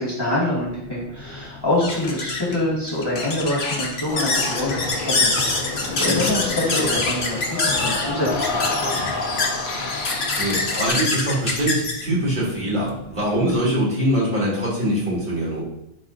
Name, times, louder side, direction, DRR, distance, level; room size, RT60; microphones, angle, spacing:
voice 1, 0.0-9.1, left 1 dB, 25° left, -8 dB, 2.4 m, -26 dB
sound 1, 0.7-13.6, left 3 dB, 80° left, 1.5 m, -26 dB
sound 2, 4.1-10.9, left 3 dB, 55° left, 1.1 m, -28 dB
voice 2, 5.8-6.2 10.3-15.6, right 1 dB, 50° right, -7 dB, 3.3 m, -23 dB
10.5 x 4.9 x 2.8 m, 0.82 s
omnidirectional pair, 1.0 m